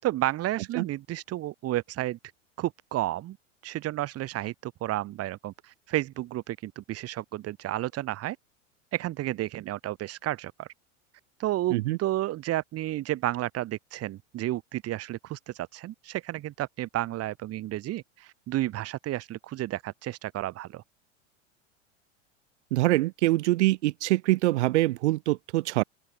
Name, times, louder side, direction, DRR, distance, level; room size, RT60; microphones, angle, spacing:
voice 1, 0.0-2.2 2.6-3.4 3.6-8.4 8.9-10.7 11.4-20.8, right 15 dB, 40° right, 3.6 m, -31 dB
voice 2, 22.7-25.8, right 18 dB, 65° right, 2.7 m, -24 dB
open air
hypercardioid pair, 90°, 38 cm